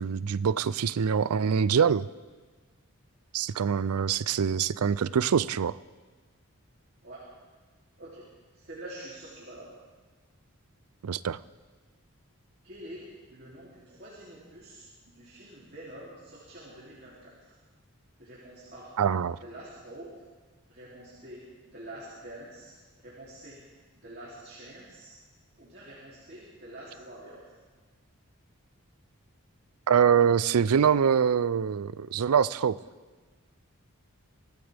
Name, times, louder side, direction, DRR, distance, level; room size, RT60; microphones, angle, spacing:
voice 1, 0.0-2.1 3.3-5.8 11.0-11.4 19.0-19.4 29.9-32.8, right 7 dB, 85° right, 18 dB, 0.4 m, -24 dB
voice 2, 3.9-4.4 7.0-7.2 8.0-8.2 8.5-9.7 12.6-17.6 18.2-18.9 19.4-20.1 20.7-23.6 23.9-25.1 25.6-27.5, right 1 dB, 45° right, -7 dB, 3.0 m, -46 dB
23.5 x 16.0 x 3.5 m, 1.4 s
head